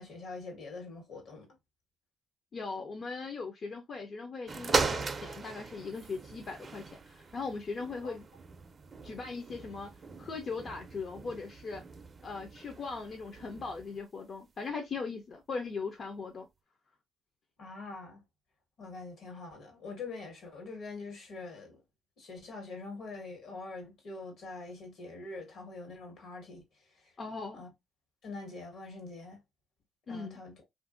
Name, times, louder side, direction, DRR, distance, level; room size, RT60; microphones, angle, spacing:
voice 1, 0.0-1.5 8.0-8.1 17.6-18.2 18.8-21.8 22.2-26.6 27.5-27.7 28.2-29.4 30.1-30.5, left 3 dB, 70° left, 1.4 m, -44 dB
voice 2, 2.5-8.3 9.0-9.9 10.2-11.8 12.2-16.5 27.2-27.6 30.1-30.4, left 4 dB, 50° left, 0.5 m, -39 dB
sound 1, 4.5-14.0 14.7-14.8, right 4 dB, 35° right, 0.4 m, -38 dB
2.8 x 2.5 x 2.5 m
cardioid pair, 90°, 0 cm